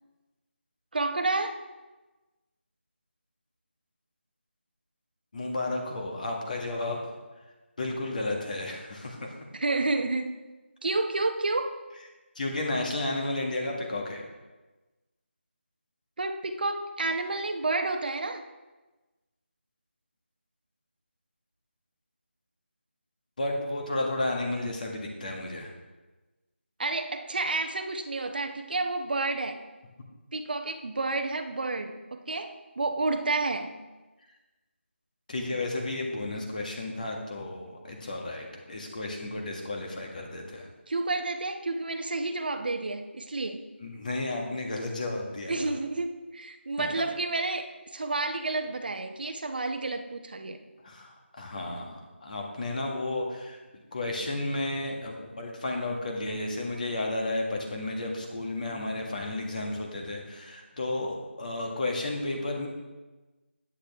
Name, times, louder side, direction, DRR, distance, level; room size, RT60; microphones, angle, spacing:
voice 1, 0.9-1.6 9.5-10.3 10.8-11.7 16.2-18.4 26.8-29.6 30.3-33.8 40.9-43.7 45.5-50.6, right 3 dB, 50° right, 7 dB, 0.8 m, -30 dB
voice 2, 5.3-7.2 7.8-9.3 12.3-14.3 23.4-25.7 35.3-40.7 43.8-45.8 46.8-46.9 50.8-62.7, left 2 dB, 40° left, 1 dB, 1.7 m, -33 dB
9.8 x 8.8 x 3.5 m, 1.2 s
figure-of-eight pair, 165°, 7 cm